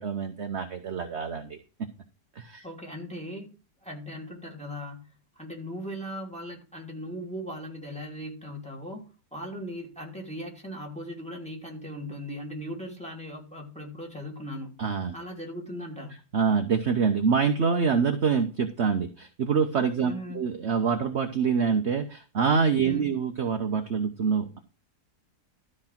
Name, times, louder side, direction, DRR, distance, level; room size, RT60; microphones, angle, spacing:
voice 1, 0.0-1.6 2.3-2.6 14.8-15.1 16.3-24.6, right 6 dB, 45° right, 1.2 m, -26 dB
voice 2, 2.6-3.5 3.8-5.1 5.4-9.0 9.3-14.7 15.1-16.1 20.0-20.4 22.8-23.1, equal, 5° left, 3.0 m, -38 dB
13.0 x 4.9 x 5.9 m
omnidirectional pair, 1.8 m